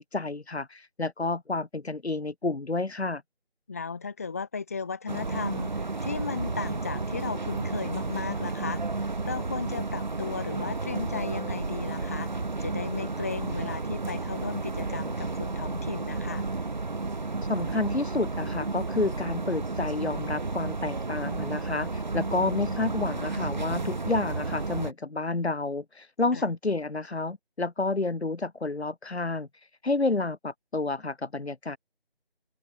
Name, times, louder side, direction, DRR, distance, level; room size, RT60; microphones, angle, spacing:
voice 1, 0.0-3.2 17.5-29.5 29.8-31.8, left 3 dB, 85° left, 2.0 m, -30 dB
voice 2, 3.7-16.4 26.3-26.4, left 5 dB, 15° left, 1.8 m, -35 dB
sound 1, 5.1-24.9, right 3 dB, 45° right, 3.1 m, -32 dB
open air
figure-of-eight pair, 170°, 32 cm